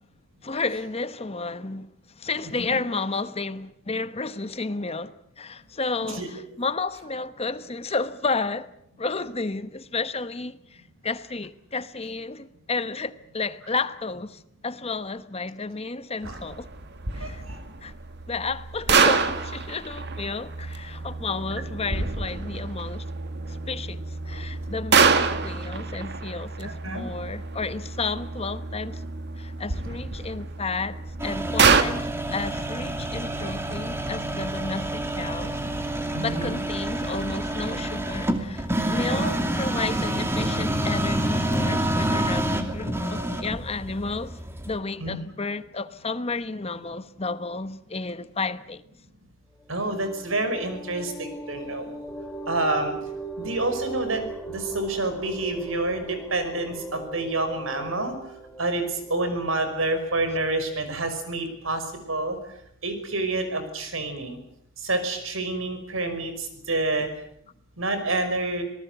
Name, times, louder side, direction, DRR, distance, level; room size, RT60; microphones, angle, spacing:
voice 1, 0.4-8.7 9.0-16.7 17.1-17.4 17.8-17.9 18.3-23.0 23.5-29.0 29.4-35.6 36.2-44.4 44.6-48.8, left 3 dB, 30° left, 1.0 m, -32 dB
sound 1, 16.2-31.8, right 5 dB, 55° right, 1.9 m, -27 dB
voice 2, 17.2-17.6 26.6-27.1 36.1-36.6 39.1-39.4 45.0-45.2 49.7-51.9 52.5-53.0 53.4-54.2 54.5-58.1 58.6-62.4 62.8-64.4 64.8-67.1 67.8-68.6, right 2 dB, 85° right, 5.7 m, -28 dB
sound 2, 31.2-44.8, right 1 dB, 10° right, 2.6 m, -28 dB
sound 3, 49.6-59.8, right 2 dB, 5° left, 6.7 m, -38 dB
26.5 x 19.0 x 8.1 m
head